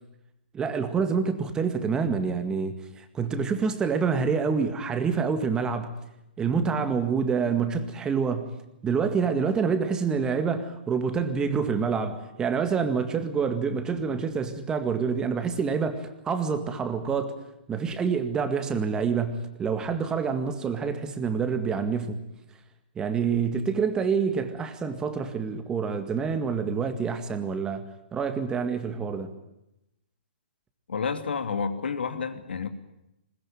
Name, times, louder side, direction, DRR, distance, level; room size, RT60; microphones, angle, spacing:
voice 1, 0.5-6.0 6.4-8.5 8.8-17.4 17.7-22.2 23.0-27.8 28.1-29.3, right 5 dB, 15° right, 1.9 m, -27 dB
voice 2, 30.9-32.7, left 5 dB, 85° left, 2.8 m, -30 dB
21.0 x 20.5 x 9.1 m
hypercardioid pair, 150°, 6 cm